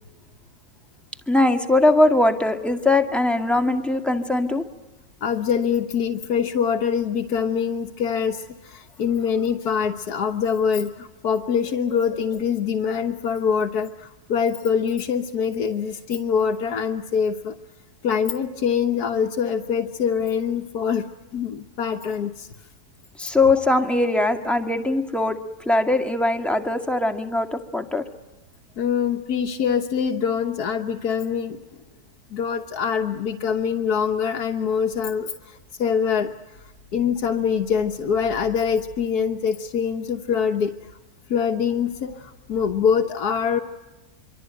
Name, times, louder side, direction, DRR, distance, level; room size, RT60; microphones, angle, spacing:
voice 1, 1.3-4.6 23.2-28.0, left 2 dB, ahead, 4 dB, 1.9 m, -21 dB
voice 2, 5.2-17.5 18.0-21.0 21.3-22.5 28.8-31.6 32.3-36.3 36.9-40.7 41.3-43.6, left 7 dB, 85° left, 4 dB, 1.7 m, -24 dB
26.0 x 24.5 x 9.1 m, 1.0 s
omnidirectional pair, 1.6 m